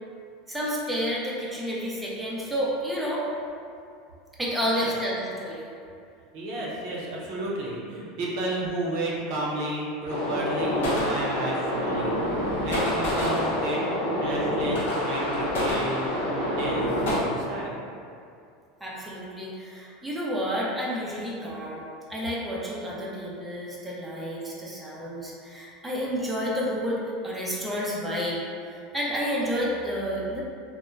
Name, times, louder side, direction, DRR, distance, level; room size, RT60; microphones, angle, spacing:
voice 1, 0.5-3.3 4.4-5.7 18.8-21.8 22.1-28.4 28.7-30.4, equal, 5° right, -6 dB, 0.5 m, -30 dB
voice 2, 6.3-13.8 14.2-16.9 17.3-17.7, right 1 dB, 65° right, -5 dB, 0.6 m, -32 dB
sound 1, 10.1-17.2, left 1 dB, 85° left, 0.6 m, -27 dB
2.9 x 2.1 x 2.3 m, 2.4 s
supercardioid pair, 105°, 0 cm